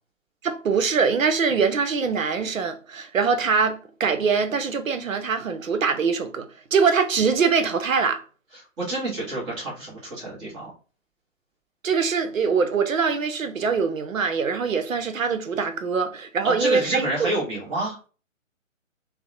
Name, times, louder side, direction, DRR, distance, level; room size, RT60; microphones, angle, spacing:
voice 1, 0.4-8.2 11.8-17.3, right 5 dB, 90° right, 0.6 m, -23 dB
voice 2, 8.5-10.7 16.4-18.0, right 1 dB, 10° right, 0.7 m, -29 dB
2.8 x 2.0 x 2.4 m
figure-of-eight pair, 135°, 39 cm